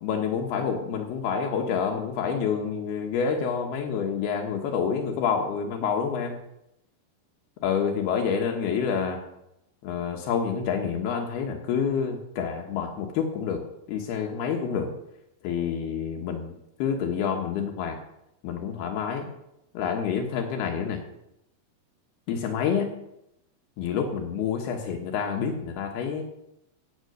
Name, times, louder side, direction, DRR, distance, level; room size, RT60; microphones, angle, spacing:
voice 1, 0.0-6.4 7.6-9.2 9.8-13.6 13.9-14.9 15.4-16.5 16.8-18.0 18.4-19.3 19.7-21.0 22.3-23.0 23.8-26.2, left 6 dB, 80° left, 3 dB, 3.2 m, -28 dB
16.0 x 8.0 x 6.5 m, 0.84 s
omnidirectional pair, 4.5 m